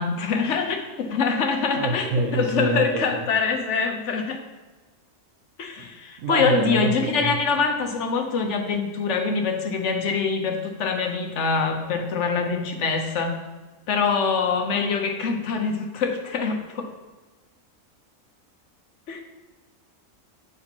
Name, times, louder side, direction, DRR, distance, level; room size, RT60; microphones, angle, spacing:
voice 1, 0.0-4.4 5.6-13.4 13.9-16.9 19.1-19.2, left 5 dB, 65° left, 3 dB, 1.1 m, -24 dB
voice 2, 1.8-3.2 6.2-7.4, right 3 dB, 75° right, 3 dB, 1.2 m, -26 dB
9.5 x 4.2 x 2.9 m, 1.2 s
omnidirectional pair, 1.4 m